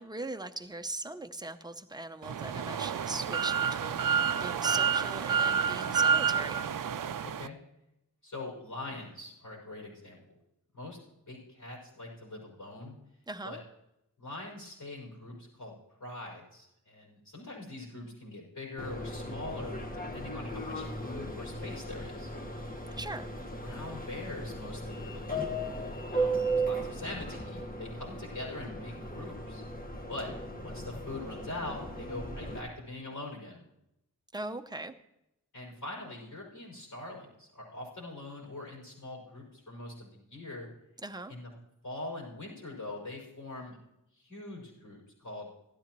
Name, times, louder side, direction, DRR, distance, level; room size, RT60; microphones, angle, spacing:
voice 1, 0.0-6.6 13.3-13.6 23.0-23.3 34.3-34.9 41.0-41.3, right 2 dB, 10° right, 8 dB, 0.7 m, -40 dB
sound 1, 2.2-7.5, right 7 dB, 65° right, 0.5 m, -29 dB
voice 2, 7.2-7.6 8.2-10.4 10.7-11.0 11.3-13.0 13.4-13.6 14.2-22.3 23.6-25.5 26.1-29.6 30.1-30.3 30.6-33.6 35.5-40.7 41.3-41.5 41.8-43.8 44.1-45.5, left 2 dB, 70° left, -5 dB, 5.4 m, -43 dB
Subway metro underground, 18.8-32.6, right 1 dB, 25° left, 1.5 m, -36 dB
16.5 x 13.0 x 3.0 m, 0.85 s
wide cardioid pair, 100°, 35 cm